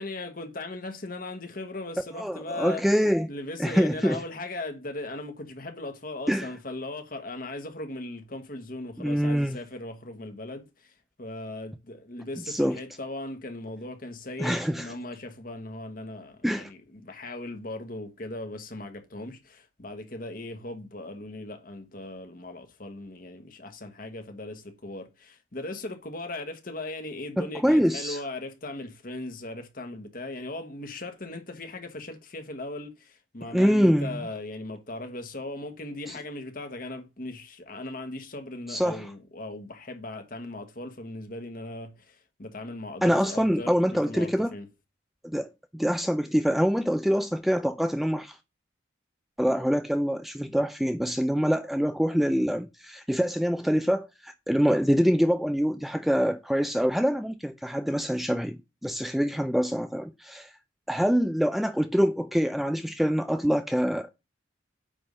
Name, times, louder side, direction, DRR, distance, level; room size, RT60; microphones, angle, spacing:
voice 1, 0.0-2.8 3.3-44.7, left 2 dB, 45° left, 1.2 m, -38 dB
voice 2, 2.2-3.3 3.6-4.2 6.3-6.5 9.0-9.6 12.5-12.8 14.4-14.9 16.4-16.7 27.4-28.2 33.5-34.2 36.1-36.2 38.7-39.1 43.0-44.5 45.3-48.4 49.4-60.5 60.9-64.1, equal, ahead, 0.3 m, -25 dB
8.8 x 3.4 x 5.3 m
head